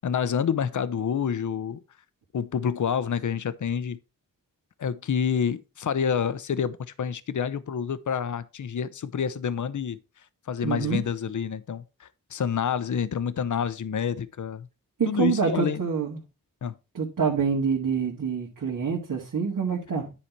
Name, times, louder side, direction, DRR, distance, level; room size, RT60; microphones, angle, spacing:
voice 1, 0.0-1.8 2.3-4.0 4.8-10.0 10.5-14.7 15.1-15.8 16.6-16.7, left 7 dB, 60° left, 0.7 m, -28 dB
voice 2, 10.6-11.0 15.0-16.2 16.9-20.1, right 6 dB, 65° right, 1.9 m, -26 dB
10.0 x 4.1 x 4.6 m
cardioid pair, 60°, 35 cm